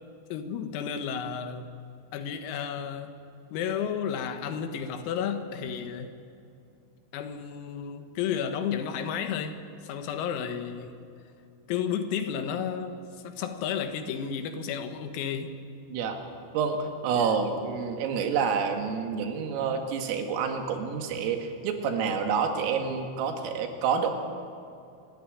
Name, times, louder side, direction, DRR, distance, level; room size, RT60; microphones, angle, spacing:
voice 1, 0.3-1.8 2.1-3.2 3.5-6.1 7.1-9.6 9.8-10.9 11.7-13.0 13.2-15.6 17.1-17.4, left 7 dB, 90° left, 8 dB, 4.2 m, -32 dB
voice 2, 17.0-21.4 21.6-24.1, right 6 dB, 80° right, 5 dB, 4.5 m, -28 dB
26.0 x 14.0 x 10.0 m, 2.6 s
omnidirectional pair, 6.0 m